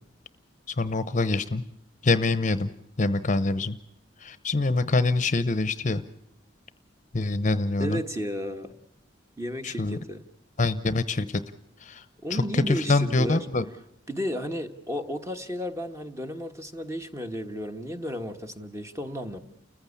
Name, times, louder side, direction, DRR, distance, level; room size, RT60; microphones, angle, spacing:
voice 1, 0.7-1.6 2.0-2.7 3.0-3.8 4.2-6.0 7.1-8.0 9.6-10.0 10.6-11.4 11.8-12.0 12.3-13.6, left 3 dB, 40° left, 14 dB, 0.8 m, -25 dB
voice 2, 7.8-8.7 9.4-10.2 12.2-13.5 14.1-19.4, equal, 15° right, 6 dB, 1.4 m, -33 dB
29.5 x 15.0 x 8.5 m, 0.76 s
head